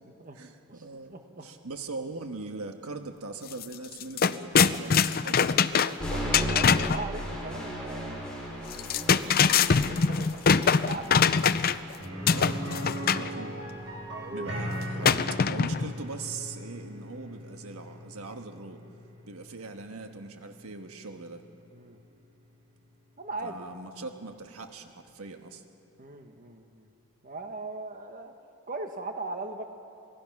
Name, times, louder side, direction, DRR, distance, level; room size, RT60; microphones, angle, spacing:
voice 1, 0.3-1.2 1.4-5.4 12.3-12.6 13.0-13.5 14.3-18.8 19.2-21.4 23.4-25.6, right 3 dB, 75° right, 6 dB, 1.4 m, -41 dB
voice 2, 1.1-1.5 5.9-8.3 9.3-11.5 13.1-13.4 13.9-14.7 14.9-15.2 21.7-22.0 23.2-23.7 26.0-26.9 27.2-28.3 28.7-29.6, right 2 dB, 40° right, 5 dB, 1.4 m, -40 dB
sound 1, 3.5-3.6 3.9-7.0 8.7-11.9 12.3-13.3 15.0-15.9, left 6 dB, 45° left, 0.5 m, -23 dB
sound 2, 6.0-14.0, equal, 5° left, 5.9 m, -37 dB
sound 3, 12.0-21.8 22.1-22.2 24.6-24.7, equal, 55° right, 6.7 m, -39 dB
27.0 x 19.0 x 6.0 m, 2.7 s
head